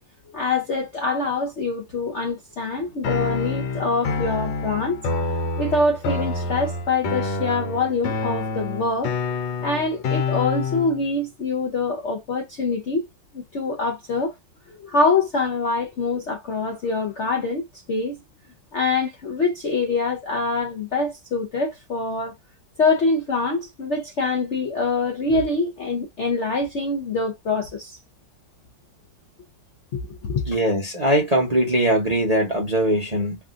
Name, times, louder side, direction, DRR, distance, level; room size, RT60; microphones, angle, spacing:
voice 1, 0.3-5.0 5.6-9.1 9.6-13.0 13.3-14.3 14.7-18.1 18.7-22.3 22.8-28.0 30.2-30.4, left 3 dB, 60° left, 0.7 m, -24 dB
sound 1, 3.0-11.0, left 3 dB, 85° left, 1.6 m, -27 dB
voice 2, 30.5-33.4, right 1 dB, 30° right, 0.7 m, -21 dB
3.5 x 2.5 x 2.4 m
omnidirectional pair, 2.0 m